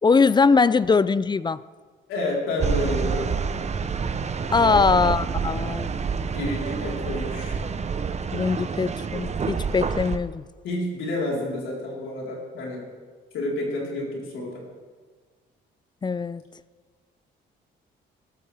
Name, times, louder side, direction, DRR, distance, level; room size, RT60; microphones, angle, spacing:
voice 1, 0.0-1.6 4.5-5.9 8.3-10.4 16.0-16.4, left 4 dB, 20° left, 17 dB, 0.4 m, -21 dB
voice 2, 2.1-3.3 4.5-4.9 6.3-7.6 10.6-12.8 13.3-14.5, left 1 dB, 85° left, -3 dB, 4.1 m, -29 dB
sound 1, 2.6-10.2, right 5 dB, 35° right, 0.8 m, -28 dB
18.0 x 13.5 x 3.5 m, 1.5 s
cardioid pair, 90°, 20 cm